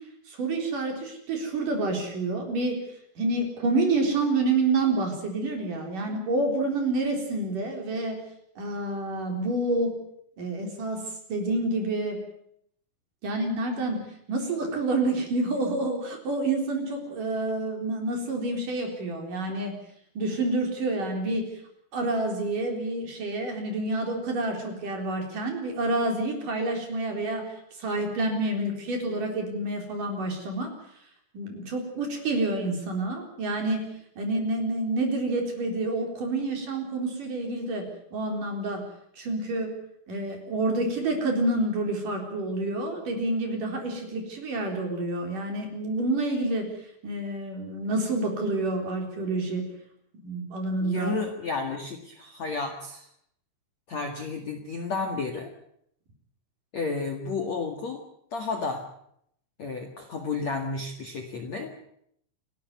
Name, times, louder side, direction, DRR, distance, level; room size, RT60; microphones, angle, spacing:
voice 1, 0.3-2.8 3.2-8.2 8.6-10.0 10.4-11.0 11.3-12.2 13.2-14.0 14.3-19.7 20.2-21.5 21.9-30.7 31.3-33.9 34.2-37.8 38.1-38.8 39.2-39.7 40.1-46.7 47.0-49.7 50.1-51.2, right 2 dB, 45° right, 3 dB, 5.2 m, -28 dB
voice 2, 50.8-53.1 53.9-55.5 56.7-58.0 58.3-58.8 59.6-61.8, left 4 dB, 50° left, 4 dB, 2.3 m, -32 dB
28.5 x 12.5 x 9.5 m, 0.72 s
omnidirectional pair, 5.7 m